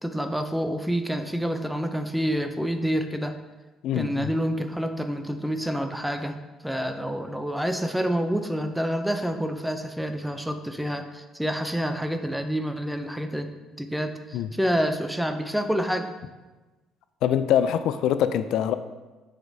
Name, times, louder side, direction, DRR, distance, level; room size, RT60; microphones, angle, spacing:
voice 1, 0.0-3.4 3.9-6.4 6.6-13.5 13.8-16.1, equal, ahead, 7 dB, 0.4 m, -28 dB
voice 2, 3.8-4.3 14.3-14.5 17.2-18.7, left 10 dB, 65° left, 11 dB, 0.3 m, -24 dB
9.3 x 5.0 x 2.7 m, 1.2 s
cardioid pair, 150°, 0 cm